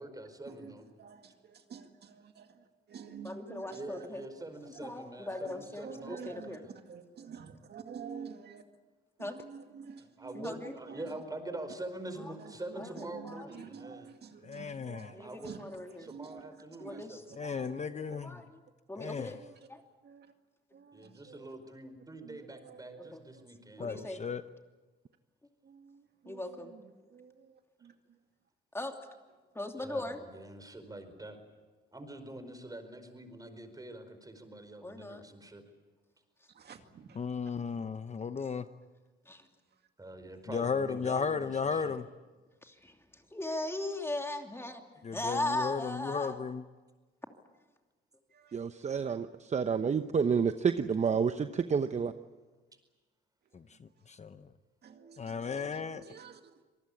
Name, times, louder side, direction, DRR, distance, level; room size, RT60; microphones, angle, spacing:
voice 1, 0.0-0.9 3.7-6.7 10.0-14.1 15.2-15.6 16.0-17.3 20.9-24.1 29.8-31.4 31.9-35.6 40.0-42.0, right 2 dB, 20° right, 4.8 m, -45 dB
voice 2, 1.0-4.1 4.8-4.9 5.3-6.6 6.9-8.6 9.2-11.0 12.2-12.5 13.0-15.7 16.0-16.5 16.8-17.0 17.4-18.2 19.3-19.6 20.0-20.3 20.7-21.5 22.2-23.1 25.6-27.9 36.5-37.2 48.3-48.5 54.8-56.4, right 6 dB, 55° right, 2.2 m, -49 dB
voice 3, 3.2-4.2 4.8-6.6 9.2-9.4 10.3-10.7 12.2-12.3 12.7-13.7 15.1-16.1 16.8-17.2 18.1-18.6 18.9-19.4 19.7-19.8 23.1-23.2 23.8-24.2 26.2-26.7 28.7-29.0 29.5-30.2 34.8-35.2 39.2-39.5 42.6-44.8 45.1-46.4, left 1 dB, 10° left, 2.8 m, -38 dB
voice 4, 14.4-15.1 17.4-18.4 19.0-19.4 23.8-24.4 37.1-38.7 40.5-42.1 45.0-46.6 53.5-54.5 55.2-56.0, left 5 dB, 35° left, 0.9 m, -35 dB
voice 5, 48.5-52.1, right 6 dB, 35° right, 0.9 m, -29 dB
26.0 x 19.0 x 8.6 m
cardioid pair, 90°, 20 cm